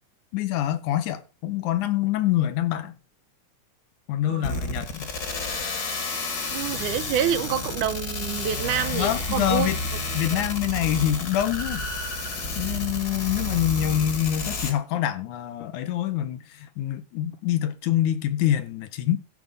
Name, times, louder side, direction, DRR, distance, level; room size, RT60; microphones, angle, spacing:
voice 1, 0.3-3.0 4.1-5.1 8.9-9.8 10.1-11.8 12.5-19.2, left 12 dB, 75° left, 2.2 m, -25 dB
voice 2, 4.3-4.7 6.5-9.7 10.3-10.4, right 10 dB, 80° right, 2.1 m, -28 dB
sound 1, 4.4-14.7, left 2 dB, 40° left, 1.6 m, -31 dB
14.5 x 5.2 x 5.1 m
omnidirectional pair, 3.7 m